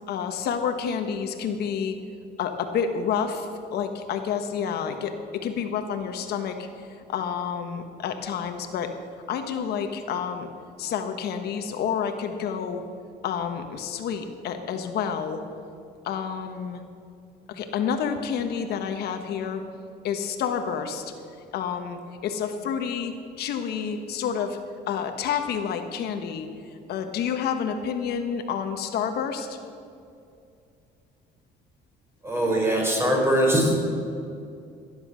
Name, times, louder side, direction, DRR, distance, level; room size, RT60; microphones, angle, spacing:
voice 1, 0.1-1.9 2.4-8.9 9.3-10.5 10.8-12.8 13.2-15.4 16.0-16.8 17.5-19.6 20.0-21.1 21.5-24.6 24.9-26.5 26.9-29.6, left 7 dB, 70° left, 6 dB, 1.4 m, -29 dB
voice 2, 32.2-33.8, right 1 dB, 15° right, -1 dB, 4.7 m, -21 dB
17.5 x 10.5 x 6.3 m, 2.5 s
cardioid pair, 110°, 17 cm